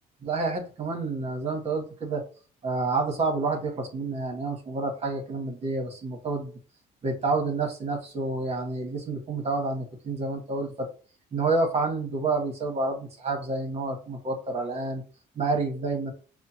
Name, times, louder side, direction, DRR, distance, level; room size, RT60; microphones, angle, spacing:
voice 1, 0.2-2.2 2.6-6.5 7.0-10.9 11.3-15.0 15.3-16.1, right 3 dB, 40° right, 3 dB, 1.3 m, -29 dB
5.6 x 2.2 x 2.9 m, 0.38 s
cardioid pair, 110°, 17 cm